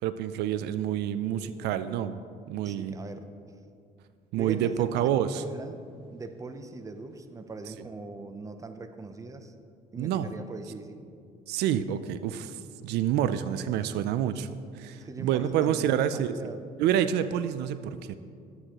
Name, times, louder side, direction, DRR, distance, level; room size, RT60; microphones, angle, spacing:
voice 1, 0.0-2.2 2.5-3.0 4.3-5.4 10.0-10.3 11.5-16.3 16.8-18.2, right 10 dB, 80° right, 12 dB, 0.4 m, -28 dB
voice 2, 2.6-3.3 4.4-5.8 6.1-9.5 9.9-11.0 15.0-16.7, right 3 dB, 20° right, 8 dB, 0.6 m, -41 dB
12.0 x 7.9 x 2.9 m, 2.4 s
cardioid pair, 110°, 17 cm